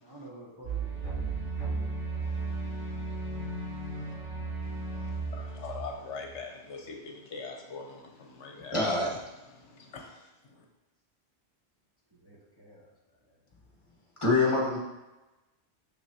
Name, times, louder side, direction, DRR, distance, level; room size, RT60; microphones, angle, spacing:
voice 1, 0.0-1.9 3.9-4.2 12.1-12.9, right 1 dB, 20° right, -5 dB, 1.0 m, -51 dB
sound 1, 0.6-6.4, right 3 dB, 70° right, 2.8 m, -35 dB
voice 2, 5.3-8.7 9.5-10.2, left 4 dB, 70° left, 2 dB, 1.1 m, -42 dB
voice 3, 8.7-9.2 14.2-14.8, left 3 dB, 25° left, -3 dB, 1.4 m, -25 dB
6.3 x 6.1 x 2.7 m, 1.1 s
omnidirectional pair, 1.2 m